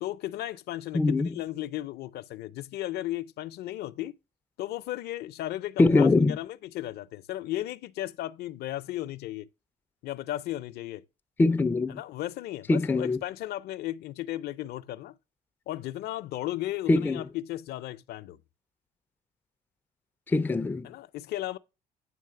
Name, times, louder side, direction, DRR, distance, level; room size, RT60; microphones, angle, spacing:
voice 1, 0.0-4.2 4.6-9.5 10.0-11.0 11.9-15.2 15.7-18.4 20.8-21.6, left 14 dB, 75° left, 0.5 m, -35 dB
voice 2, 0.9-1.3 5.8-6.4 11.4-12.0 12.7-13.2 16.9-17.2 20.3-20.9, left 3 dB, 10° left, 0.3 m, -23 dB
9.2 x 3.2 x 6.7 m
cardioid pair, 110°, 17 cm